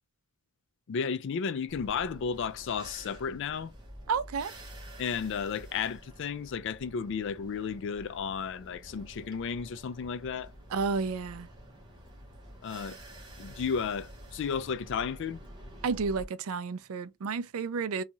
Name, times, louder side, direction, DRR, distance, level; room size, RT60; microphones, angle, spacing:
voice 1, 0.9-3.7 5.0-10.5 12.6-13.0 13.4-15.4, left 6 dB, 60° left, 0.3 m, -33 dB
sound 1, 1.7-16.2, equal, 20° right, 0.9 m, -49 dB
voice 2, 4.1-4.5 10.7-11.5 15.8-18.0, right 5 dB, 80° right, 0.4 m, -31 dB
2.7 x 2.3 x 2.9 m
head